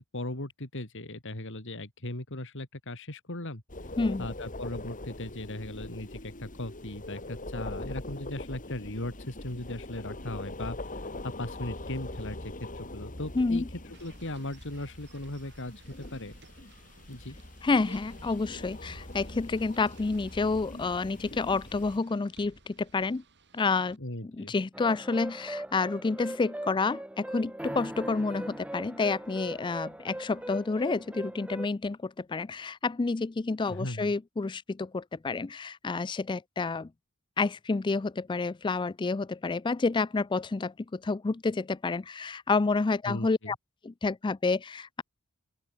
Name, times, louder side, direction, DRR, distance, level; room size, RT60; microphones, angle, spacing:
voice 1, 0.0-3.6 4.2-13.6 14.0-16.4 17.1-17.4 24.0-24.5 33.7-34.1 43.1-43.5, left 1 dB, 60° left, 3.4 m, -38 dB
sound 1, 3.7-22.0, left 1 dB, 35° left, 4.1 m, -42 dB
voice 2, 13.4-13.7 17.6-23.2 23.5-24.0 24.2-36.9 37.4-43.6 43.8-45.0, left 3 dB, 20° left, 0.4 m, -29 dB
sound 2, 13.9-24.0, right 3 dB, 50° right, 5.8 m, -57 dB
sound 3, 24.7-31.7, right 1 dB, 5° right, 0.8 m, -39 dB
open air
head